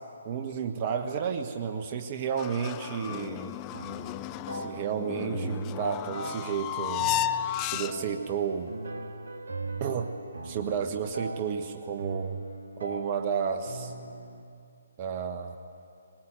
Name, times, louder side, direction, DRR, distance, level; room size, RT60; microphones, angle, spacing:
voice 1, 0.2-3.6 4.5-7.3 7.6-8.8 9.8-10.1 10.5-12.4 12.8-13.9 15.0-15.6, right 7 dB, 35° right, 6 dB, 1.2 m, -32 dB
sound 1, 2.4-8.3, left 12 dB, 25° left, 0.4 m, -34 dB
sound 2, 3.7-14.4, right 3 dB, 70° right, 1.8 m, -40 dB
22.0 x 18.5 x 7.9 m, 2.6 s
figure-of-eight pair, 140°, 0 cm